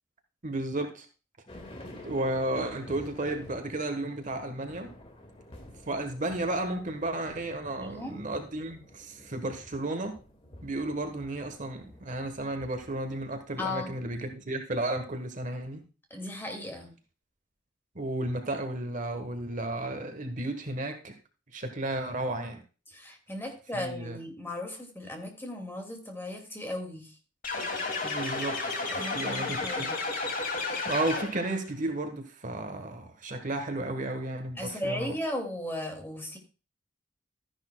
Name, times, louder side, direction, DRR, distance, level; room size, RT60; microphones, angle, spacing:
voice 1, 0.4-1.1 2.0-4.9 5.9-10.2 10.6-15.8 17.9-21.1 21.5-22.6 23.7-24.2 28.0-29.9 30.8-35.1, right 2 dB, 40° right, 6 dB, 1.2 m, -33 dB
sound 1, 1.5-14.2, left 1 dB, 30° left, 1.9 m, -50 dB
voice 2, 7.8-8.2 13.6-13.9 16.1-16.9 22.9-27.1 28.9-30.0 34.6-36.4, left 1 dB, 10° left, 3 dB, 2.1 m, -36 dB
sound 2, 27.4-31.6, left 3 dB, 45° left, 2.4 m, -32 dB
13.0 x 10.5 x 2.2 m, 0.33 s
head